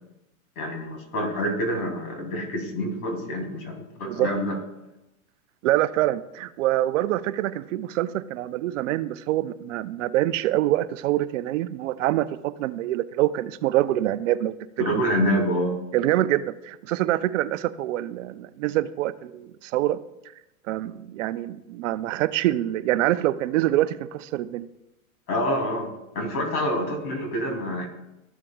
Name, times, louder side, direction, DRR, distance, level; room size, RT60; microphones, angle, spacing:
voice 1, 0.6-4.6 14.8-15.8 25.3-27.9, equal, 85° left, 2 dB, 2.9 m, -27 dB
voice 2, 5.6-14.5 14.9-15.0 15.9-20.0 20.7-24.7, right 14 dB, 60° right, 14 dB, 0.5 m, -25 dB
13.5 x 7.3 x 2.3 m, 0.92 s
supercardioid pair, 145°, 44 cm